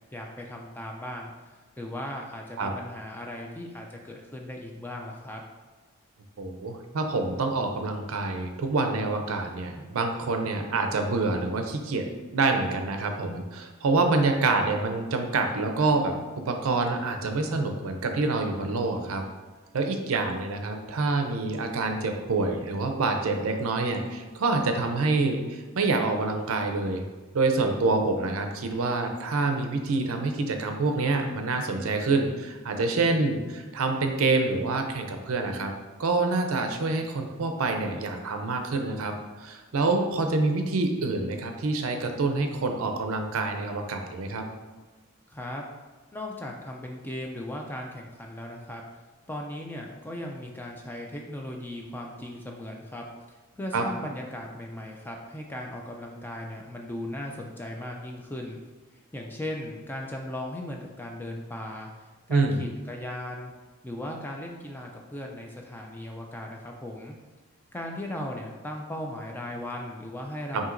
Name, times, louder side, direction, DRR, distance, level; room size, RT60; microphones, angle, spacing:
voice 1, 0.1-1.3 1.8-5.4 45.3-45.6 46.1-48.8 49.3-58.6 59.1-61.9 62.3-63.5 63.8-67.1 67.7-70.7, left 1 dB, 10° left, 0 dB, 0.3 m, -37 dB
voice 2, 6.4-12.1 12.3-19.2 19.7-27.0 27.3-35.7 36.0-39.1 39.4-44.4 53.7-53.8 62.3-62.6 70.5-70.6, right 3 dB, 65° right, 5 dB, 0.5 m, -26 dB
5.8 x 2.8 x 2.5 m, 1.3 s
head